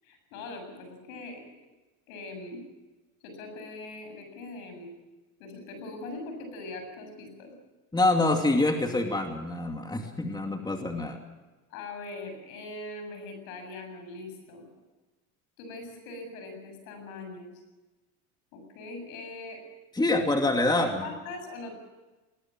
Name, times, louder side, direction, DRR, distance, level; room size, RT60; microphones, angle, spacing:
voice 1, 0.0-1.5 2.1-2.6 3.2-4.9 5.4-7.5 11.7-14.6 15.6-17.5 18.5-19.6 20.8-21.7, left 2 dB, 75° left, 6 dB, 7.6 m, -41 dB
voice 2, 7.9-11.2 19.9-21.1, left 2 dB, 10° left, 4 dB, 2.6 m, -26 dB
20.0 x 19.5 x 7.7 m, 1.2 s
supercardioid pair, 100°, 42 cm